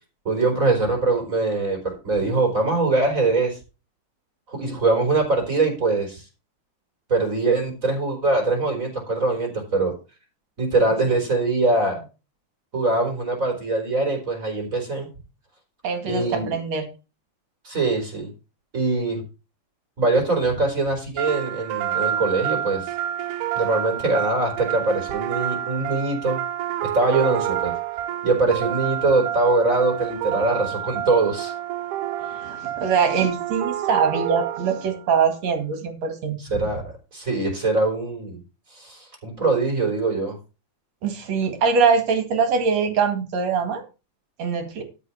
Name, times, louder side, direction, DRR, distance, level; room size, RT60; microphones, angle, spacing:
voice 1, 0.2-3.6 4.5-6.2 7.1-9.9 10.6-12.1 12.7-15.1 16.0-16.6 17.6-18.3 18.7-19.2 20.0-22.9 23.5-26.4 26.8-27.7 28.2-31.5 36.4-36.8 37.1-38.4 38.7-40.4, right 3 dB, 25° right, 2 dB, 4.4 m, -22 dB
voice 2, 15.8-16.9 32.2-36.4 41.0-43.8 44.4-44.8, right 5 dB, 60° right, 6 dB, 3.1 m, -23 dB
sound 1, 21.2-35.0, right 11 dB, 90° right, 2.3 m, -28 dB
12.5 x 5.5 x 5.8 m, 0.31 s
omnidirectional pair, 3.5 m